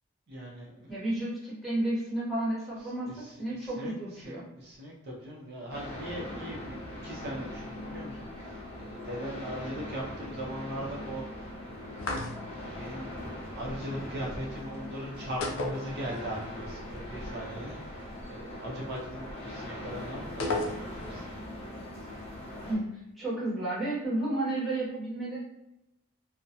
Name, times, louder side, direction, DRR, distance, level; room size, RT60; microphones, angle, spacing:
voice 1, 0.3-0.9 3.0-3.9 4.2-20.6 21.1-21.9, equal, 55° right, -4 dB, 0.5 m, -40 dB
voice 2, 0.9-4.4 22.6-22.8 23.2-25.4, right 1 dB, ahead, -8 dB, 0.9 m, -32 dB
sound 1, 5.7-22.7, left 1 dB, 30° left, 0.5 m, -41 dB
sound 2, 12.0-12.7 15.4-16.5 16.7-16.8 20.4-21.2, left 2 dB, 80° left, 0.4 m, -33 dB
2.3 x 2.1 x 2.7 m, 0.88 s
head